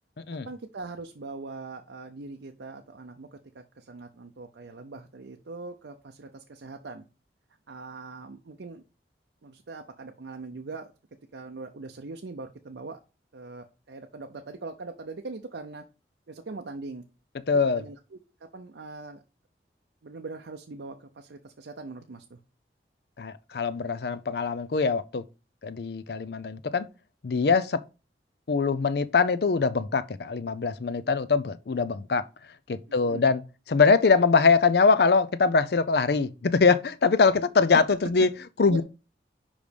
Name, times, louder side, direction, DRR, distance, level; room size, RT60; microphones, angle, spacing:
voice 1, 0.3-7.0 7.7-8.8 9.4-10.9 11.3-13.0 13.3-15.8 16.3-17.0 17.5-18.2 18.5-19.2 20.0-22.4 33.0-33.2 38.7-38.8, right 3 dB, 85° right, 0.6 m, -41 dB
voice 2, 17.5-17.8 23.2-25.2 25.6-26.9 27.2-27.8 28.5-32.2 32.7-33.4 33.7-38.3 38.6-38.8, left 4 dB, 65° left, 0.5 m, -23 dB
5.2 x 5.0 x 5.2 m
head